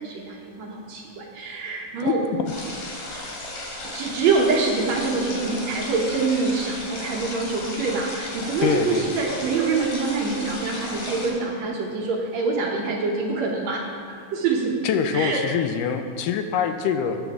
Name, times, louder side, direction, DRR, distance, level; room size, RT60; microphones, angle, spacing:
voice 1, 0.0-2.2 3.9-13.8 14.3-14.8 15.1-15.4, right 4 dB, 65° right, -1 dB, 2.0 m, -25 dB
sound 1, 2.5-11.3, left 2 dB, 70° left, 3.5 m, -35 dB
voice 2, 8.6-9.1 14.8-17.2, left 7 dB, 90° left, 7 dB, 2.2 m, -24 dB
13.0 x 9.2 x 3.6 m, 2.4 s
omnidirectional pair, 3.8 m